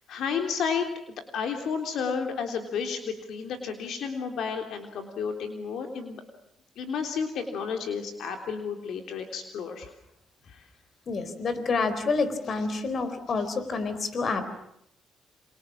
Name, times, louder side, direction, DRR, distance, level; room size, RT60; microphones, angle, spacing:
voice 1, 0.1-0.9 1.3-6.2 6.8-9.9 10.5-10.6, left 6 dB, 75° left, 5 dB, 3.4 m, -31 dB
voice 2, 11.1-14.5, left 4 dB, 50° left, 11 dB, 4.0 m, -28 dB
29.0 x 26.5 x 7.4 m, 0.76 s
cardioid pair, 90°, 0 cm